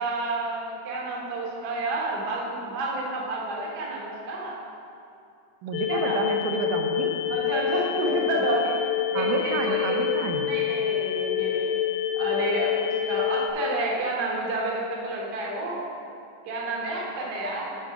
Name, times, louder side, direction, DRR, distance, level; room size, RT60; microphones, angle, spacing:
voice 1, 0.0-4.6 5.9-6.3 7.3-8.7 9.1-10.0 10.4-11.7 12.1-15.8 16.4-17.8, right 2 dB, 55° right, -3 dB, 1.1 m, -30 dB
voice 2, 5.6-7.2 9.1-10.5, right 5 dB, 85° right, 4 dB, 2.2 m, -29 dB
sound 1, 5.7-13.5, left 10 dB, 80° left, 1.8 m, -27 dB
7.8 x 5.0 x 5.7 m, 2.5 s
omnidirectional pair, 3.6 m